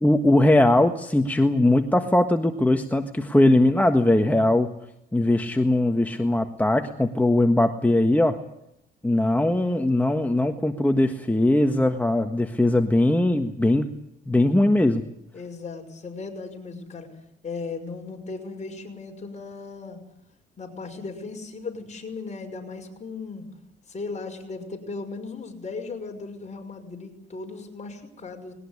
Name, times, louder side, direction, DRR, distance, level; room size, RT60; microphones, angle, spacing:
voice 1, 0.0-4.7 5.1-8.4 9.0-13.9 14.3-15.0, left 1 dB, 10° left, 6 dB, 1.5 m, -20 dB
voice 2, 15.3-17.1 17.4-20.0 20.6-23.4 23.9-28.5, left 4 dB, 35° left, 3 dB, 5.9 m, -36 dB
20.5 x 18.5 x 9.9 m, 0.80 s
cardioid pair, 90°, 20 cm